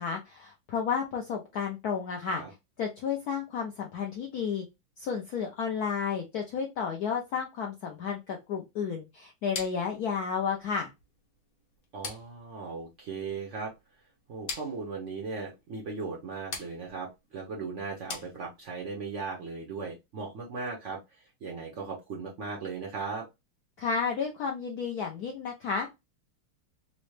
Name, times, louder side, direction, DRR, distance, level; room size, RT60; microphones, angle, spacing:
voice 1, 0.0-2.4 2.8-4.6 5.0-10.9 23.8-25.9, left 6 dB, 80° left, 2 dB, 0.8 m, -32 dB
sound 1, 9.5-18.9, left 4 dB, 50° left, 1.2 m, -44 dB
voice 2, 11.9-13.7 14.3-23.3, right 4 dB, 75° right, -1 dB, 0.6 m, -37 dB
3.9 x 2.1 x 3.1 m, 0.22 s
omnidirectional pair, 2.3 m